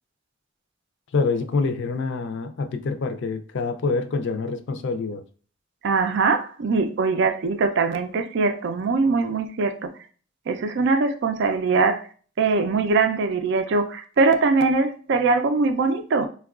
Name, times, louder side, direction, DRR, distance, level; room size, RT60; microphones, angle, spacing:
voice 1, 1.1-5.2, left 4 dB, 65° left, 8 dB, 0.4 m, -26 dB
voice 2, 5.8-9.9 10.5-12.1 12.4-16.3, right 4 dB, 60° right, 7 dB, 0.4 m, -22 dB
4.4 x 2.3 x 2.3 m, 0.41 s
head